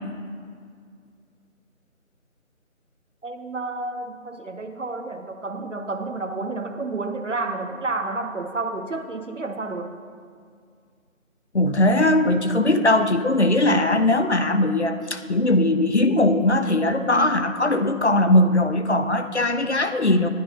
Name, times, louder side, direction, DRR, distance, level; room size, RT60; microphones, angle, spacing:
voice 1, 3.2-9.9, right 3 dB, 60° right, 7 dB, 0.7 m, -30 dB
voice 2, 11.5-20.3, left 1 dB, 55° left, 8 dB, 0.5 m, -20 dB
11.0 x 10.0 x 2.7 m, 2.1 s
figure-of-eight pair, 175°, 42 cm